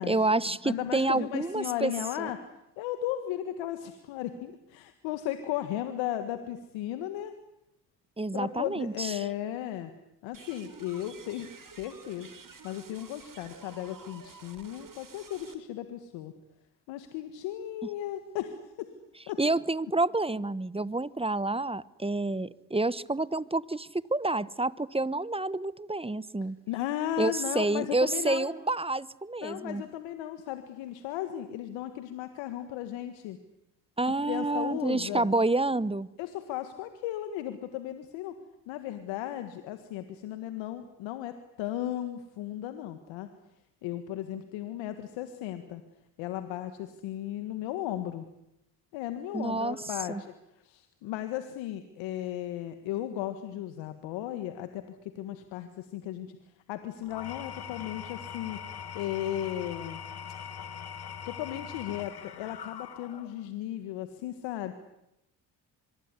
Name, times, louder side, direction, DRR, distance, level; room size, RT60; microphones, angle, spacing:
voice 1, 0.1-1.9 2.2-2.3 8.2-9.2 19.4-26.6 27.2-29.8 34.0-36.1 49.3-49.8 50.1-50.2, right 2 dB, 15° right, 19 dB, 1.2 m, -29 dB
voice 2, 0.6-2.4 2.8-7.3 8.3-9.9 10.2-12.3 12.6-16.3 16.9-18.9 19.3-19.4 26.7-28.5 29.4-33.4 34.2-35.3 36.2-38.4 38.7-43.3 43.8-45.8 46.2-48.2 48.9-50.3 50.6-56.4 56.7-58.6 58.9-60.0 61.2-64.7, left 12 dB, 85° left, 9 dB, 1.8 m, -35 dB
sound 1, 10.3-15.5, right 5 dB, 45° right, 4.2 m, -50 dB
Engine / Tools, 57.0-63.5, left 7 dB, 60° left, 2.1 m, -42 dB
24.5 x 23.0 x 9.8 m, 0.83 s
supercardioid pair, 55°, 44 cm